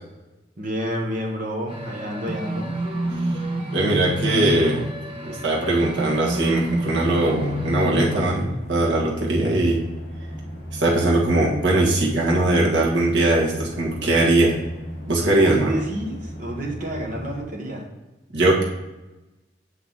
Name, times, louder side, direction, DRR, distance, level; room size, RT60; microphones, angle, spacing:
voice 1, 0.6-2.8 15.2-17.9, equal, 45° right, -1 dB, 1.6 m, -29 dB
sound 1, 1.7-8.2, equal, 30° right, 1.1 m, -28 dB
voice 2, 3.7-4.9 5.2-9.8 10.8-14.6 15.1-15.8 18.3-18.6, right 2 dB, 75° right, -4 dB, 1.8 m, -20 dB
sound 2, 6.8-17.4, equal, 40° left, 2.1 m, -37 dB
8.3 x 5.5 x 4.1 m, 1.1 s
head